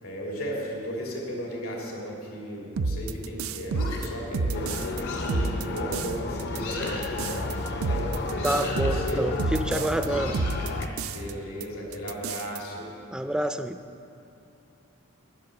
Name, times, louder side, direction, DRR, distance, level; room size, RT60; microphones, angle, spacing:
voice 1, 0.0-8.2 8.8-9.2 11.1-12.9, equal, 90° left, -2 dB, 3.1 m, -35 dB
sound 1, 2.8-5.0 5.3-6.1 6.4-10.1 10.3-11.3 11.6-11.7 11.9-12.6, right 3 dB, 80° right, 0.5 m, -30 dB
sound 2, 3.7-4.2 5.0-5.5 6.5-7.1 8.3-8.9 10.0-10.9, left 2 dB, 70° left, 2.7 m, -37 dB
sound 3, 4.5-10.9, left 2 dB, 50° left, 0.7 m, -32 dB
voice 2, 8.4-10.4 13.1-13.8, right 1 dB, 5° right, 9 dB, 0.3 m, -28 dB
13.0 x 9.5 x 6.7 m, 2.7 s
head